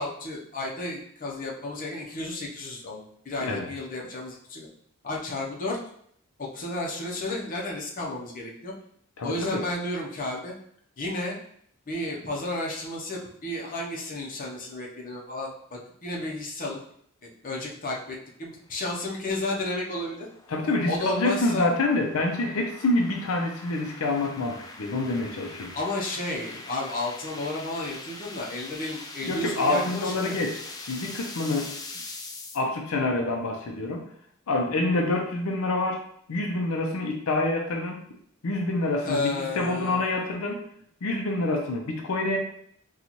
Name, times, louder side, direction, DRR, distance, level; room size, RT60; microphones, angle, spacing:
voice 1, 0.0-4.7 5.0-5.8 6.5-8.7 9.2-10.5 11.0-11.4 11.9-16.8 17.2-20.3 20.9-21.7 25.7-30.4 39.0-40.1, left 2 dB, 40° left, -2 dB, 0.7 m, -32 dB
voice 2, 9.2-9.6 20.5-25.7 29.2-31.7 32.5-34.0 34.5-36.0 36.3-38.0 38.4-40.6 41.0-42.4, left 2 dB, 85° left, 2 dB, 0.5 m, -27 dB
sound 1, 18.6-32.6, left 3 dB, 20° left, 0.3 m, -43 dB
4.0 x 2.3 x 3.0 m, 0.66 s
head